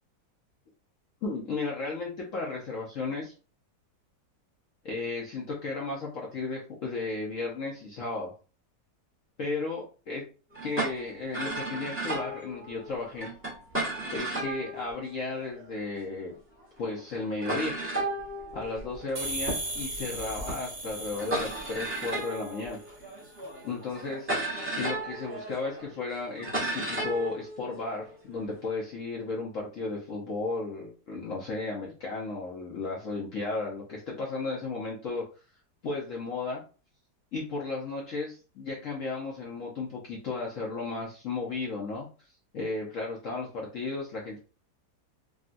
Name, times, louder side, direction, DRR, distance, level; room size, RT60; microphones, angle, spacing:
voice 1, 1.2-3.3 4.8-8.3 9.4-10.2 10.6-13.3 14.1-16.3 16.8-17.7 18.5-22.8 23.6-24.3 24.8-35.2 35.8-36.6 37.3-42.1 42.5-44.4, left 3 dB, 60° left, -3 dB, 1.0 m, -34 dB
sound 1, 10.5-15.8 16.6-16.7 16.9-17.0 17.4-28.6, right 2 dB, 10° right, 0.9 m, -35 dB
sound 2, 19.2-22.7, right 2 dB, 85° right, 1.4 m, -37 dB
3.7 x 2.3 x 2.5 m, 0.35 s
omnidirectional pair, 1.8 m